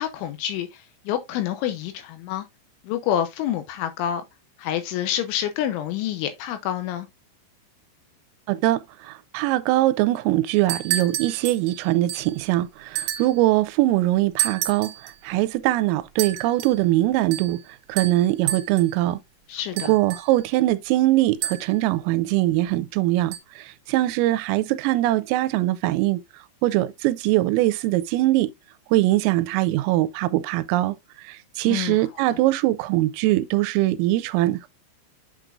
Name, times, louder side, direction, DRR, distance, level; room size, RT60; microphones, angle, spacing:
voice 1, 0.0-2.5 2.8-4.2 4.6-7.1 19.5-19.9 31.7-32.0, left 11 dB, 80° left, 3.0 m, -27 dB
voice 2, 8.5-17.6 17.9-19.2 19.8-26.2 26.6-28.5 28.9-31.0 31.2-34.7, right 16 dB, 90° right, 3.3 m, -22 dB
sound 1, 10.5-12.4 13.0-13.4 14.4-15.2 16.2-16.8 17.3-17.6 18.0-19.0 19.8-20.5 21.4-21.9 23.3-23.4, right 12 dB, 75° right, 2.7 m, -30 dB
8.2 x 6.1 x 2.5 m
omnidirectional pair, 5.8 m